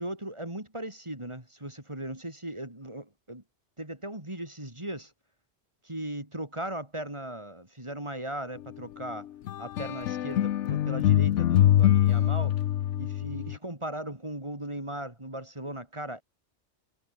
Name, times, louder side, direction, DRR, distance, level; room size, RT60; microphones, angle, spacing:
voice 1, 0.0-3.4 3.8-5.1 5.8-9.3 9.6-12.5 13.0-16.2, right 1 dB, 25° right, 4.0 m, -38 dB
sound 1, 9.5-13.6, left 12 dB, 75° left, 1.0 m, -24 dB
omnidirectional pair, 1.3 m